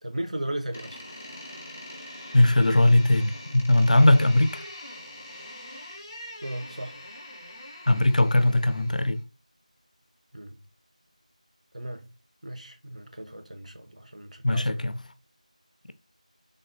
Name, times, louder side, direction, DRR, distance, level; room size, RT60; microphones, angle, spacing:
voice 1, 0.0-1.0 6.4-7.0 10.3-10.5 11.7-12.0 12.4-14.9, right 1 dB, 60° right, 0.6 m, -36 dB
Door, 0.7-9.2, left 1 dB, 10° left, 0.3 m, -43 dB
voice 2, 2.3-4.6 7.9-9.2 14.4-15.0, left 1 dB, 85° left, 0.4 m, -20 dB
3.5 x 2.1 x 2.5 m
figure-of-eight pair, 180°, 4 cm